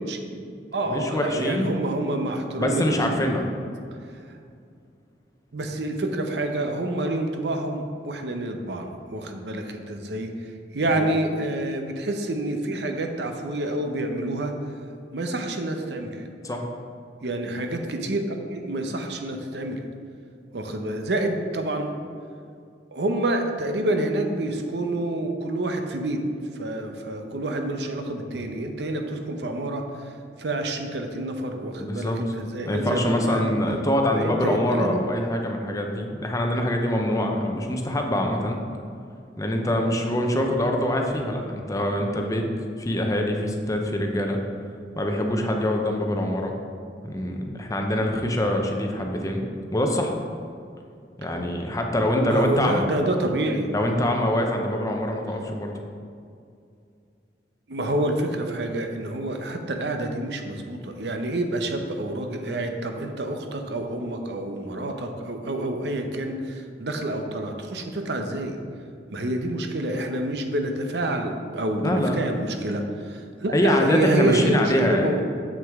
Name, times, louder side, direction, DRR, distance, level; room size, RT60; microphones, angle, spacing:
voice 1, 0.1-0.4 0.7-3.1 5.5-10.3 10.7-14.5 15.1-16.1 17.2-19.8 20.5-21.9 22.9-26.2 26.6-29.8 30.4-33.5 34.1-35.0 52.3-53.7 57.7-68.6 69.1-75.3, right 1 dB, 70° right, 5 dB, 0.7 m, -28 dB
voice 2, 0.9-1.7 2.6-3.4 11.0-11.1 16.4-16.6 31.8-32.2 32.7-38.6 39.4-42.5 42.8-44.4 45.0-46.5 47.0-49.4 49.7-50.1 51.2-52.8 53.7-55.7 71.8-72.3 73.5-75.1, left 1 dB, 20° left, 2 dB, 0.7 m, -24 dB
7.5 x 6.1 x 3.5 m, 2.3 s
head